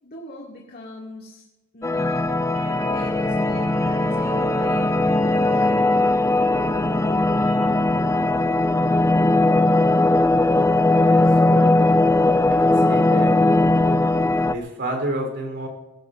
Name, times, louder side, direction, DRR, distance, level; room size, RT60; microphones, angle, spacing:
voice 1, 0.0-1.4 1.7-2.3 2.9-5.8, left 1 dB, 45° left, -3 dB, 2.5 m, -40 dB
sound 1, 1.8-14.5, left 2 dB, 15° left, 0.4 m, -19 dB
sound 2, 2.5-7.7, right 3 dB, 25° right, 2.7 m, -46 dB
voice 2, 11.0-11.9 12.5-13.4 14.5-15.7, right 1 dB, 55° right, 2 dB, 4.0 m, -30 dB
22.5 x 16.5 x 2.7 m, 1.1 s
head